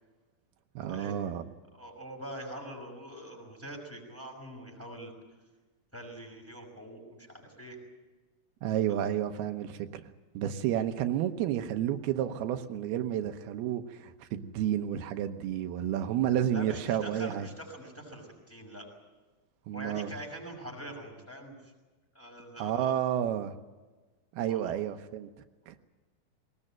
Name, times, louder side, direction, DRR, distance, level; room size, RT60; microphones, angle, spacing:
voice 1, 0.8-1.5 8.6-10.0 10.3-17.5 19.7-20.1 22.6-23.6 24.3-25.3 25.7-25.8, right 10 dB, 85° right, 7 dB, 2.9 m, -31 dB
voice 2, 1.7-5.1 5.9-7.8 8.9-9.0 16.5-18.9 19.7-21.7 22.1-23.0 24.4-24.7, right 1 dB, 5° left, -1 dB, 5.5 m, -44 dB
21.0 x 19.0 x 8.9 m, 1.2 s
omnidirectional pair, 4.4 m